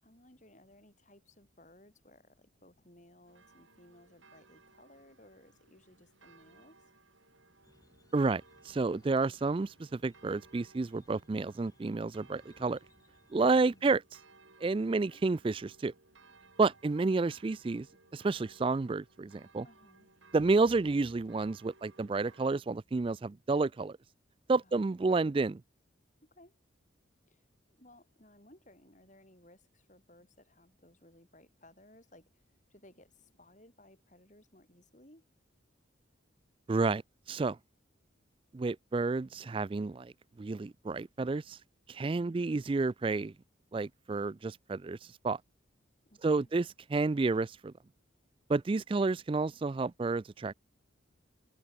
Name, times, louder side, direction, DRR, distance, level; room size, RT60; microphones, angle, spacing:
voice 1, 0.0-6.9 13.7-13.9 14.9-15.2 19.6-20.1 24.6-25.5 26.2-26.6 27.3-35.3 46.0-46.5, left 1 dB, 40° left, 8.0 m, -60 dB
sound 1, 3.3-22.5, right 3 dB, 75° right, 7.8 m, -62 dB
sound 2, 7.6-13.9, left 1 dB, 20° left, 7.5 m, -67 dB
voice 2, 8.1-12.8 13.3-14.0 14.6-15.9 16.6-17.9 18.1-19.6 20.3-24.0 24.5-25.6 36.7-37.6 38.5-41.6 41.9-43.3 43.7-45.4 46.2-47.7 48.5-50.5, right 3 dB, 25° right, 0.3 m, -30 dB
head